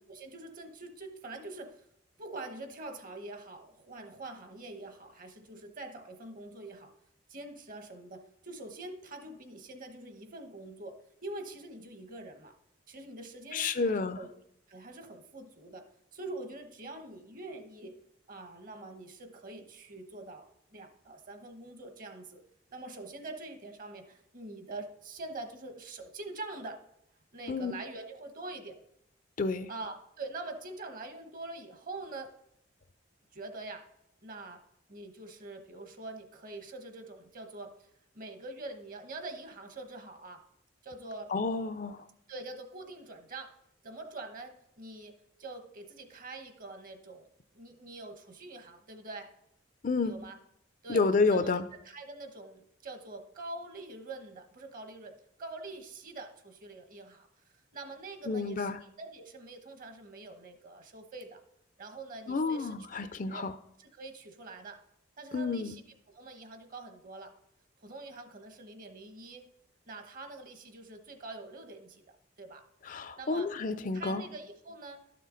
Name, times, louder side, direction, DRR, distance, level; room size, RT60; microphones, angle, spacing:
voice 1, 0.1-1.8 2.2-6.9 7.3-12.5 12.9-14.3 14.7-18.0 18.3-22.4 22.7-26.8 27.3-28.8 29.7-32.3 33.3-33.9 34.2-34.6 34.9-37.9 38.1-40.4 40.8-41.3 42.3-43.5 43.8-47.3 47.5-49.3 50.0-50.4 50.8-51.0 51.3-51.5 51.8-57.3 57.7-61.4 61.8-63.4 63.8-64.8 65.2-65.8 66.1-67.4 67.8-69.4 69.9-72.6 73.1-73.5 73.9-75.1, right 2 dB, 45° right, 1.1 m, -45 dB
voice 2, 13.5-14.2 27.5-27.7 29.4-29.7 41.3-42.0 49.8-50.2 50.9-51.7 58.3-58.8 62.3-63.5 65.3-65.8 72.9-74.3, left 4 dB, 40° left, 0.4 m, -30 dB
12.0 x 6.6 x 3.9 m
head